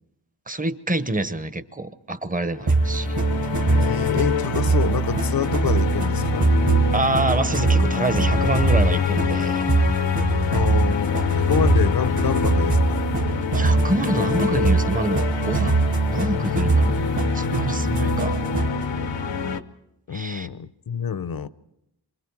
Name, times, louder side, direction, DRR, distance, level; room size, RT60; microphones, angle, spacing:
voice 1, 0.5-3.1 6.9-9.6 13.5-15.7 16.1-17.0 17.3-18.4 20.1-20.5, right 2 dB, 20° right, 0.9 m, -26 dB
sound 1, 2.6-19.6, left 5 dB, 85° left, 0.9 m, -25 dB
sound 2, 2.7-18.9, right 3 dB, 40° right, 1.6 m, -23 dB
voice 2, 3.7-6.6 10.5-13.1 20.1-21.5, left 7 dB, 55° left, 0.7 m, -27 dB
27.0 x 24.5 x 4.7 m
wide cardioid pair, 115°, 43 cm